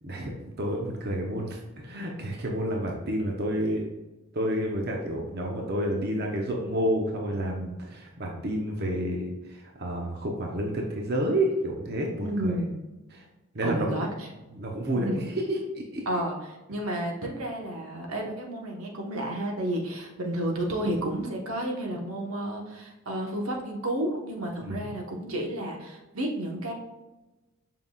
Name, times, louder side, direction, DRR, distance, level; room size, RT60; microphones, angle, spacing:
voice 1, 0.0-3.9 4.3-12.6 13.1-13.2 13.5-14.0 14.5-16.0 24.6-24.8, right 1 dB, 50° right, 0 dB, 0.9 m, -30 dB
voice 2, 12.2-12.7 13.6-14.3 14.9-15.2 16.0-16.4 16.7-26.7, right 1 dB, 80° right, 0 dB, 1.3 m, -31 dB
7.6 x 5.5 x 2.4 m, 1.1 s
head